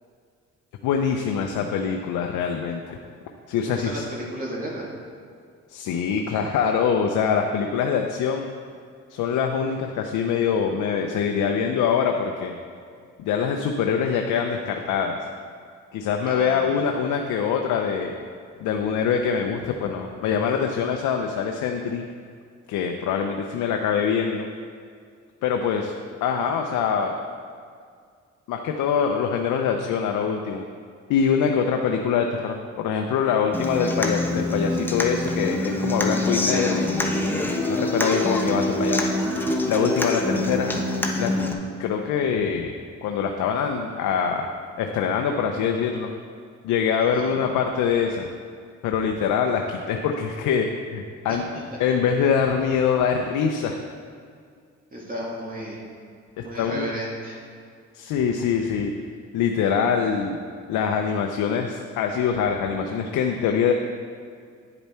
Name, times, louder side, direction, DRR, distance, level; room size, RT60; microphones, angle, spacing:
voice 1, 0.8-3.0 3.5-4.0 5.7-8.5 9.1-12.5 13.2-15.2 15.9-18.1 18.6-22.0 22.7-24.5 25.4-25.9 26.2-27.1 28.5-30.6 31.1-36.8 37.7-39.1 39.6-40.9 41.2-41.3 41.8-42.7 43.0-44.5 44.8-46.1 46.6-48.3 48.8-50.7 50.9-51.4 51.8-53.8 56.5-56.8 57.9-58.9 59.3-60.4 60.7-63.7, left 7 dB, 85° left, 3 dB, 0.7 m, -24 dB
voice 2, 3.7-4.9 16.3-16.8 47.0-47.4 51.3-51.6 54.9-55.8 56.4-57.4, equal, 30° right, -4 dB, 2.1 m, -33 dB
Human voice / Acoustic guitar, 33.5-41.5, left 1 dB, 5° left, 0.9 m, -25 dB
10.0 x 6.9 x 4.4 m, 2.1 s
cardioid pair, 90°, 30 cm